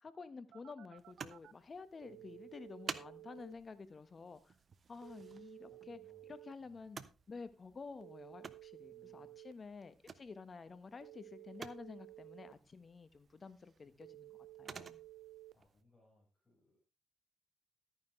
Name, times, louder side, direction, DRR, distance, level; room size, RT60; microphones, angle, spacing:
voice 1, 0.0-4.6 4.9-6.0 6.3-14.3 14.6-15.0, left 4 dB, 35° left, 1.3 m, -51 dB
Telephone, 0.5-1.5 2.0-3.5 5.0-6.5 8.0-9.5 11.0-12.5 14.0-15.5, right 16 dB, 80° right, 0.5 m, -55 dB
sound 1, 1.0-15.8, right 6 dB, 45° right, 0.9 m, -54 dB
voice 2, 2.0-2.6 5.3-6.8 8.9-9.4 13.8-14.2 15.0-16.8, left 2 dB, 20° left, 5.4 m, -71 dB
13.5 x 9.6 x 3.2 m
cardioid pair, 90°, 0 cm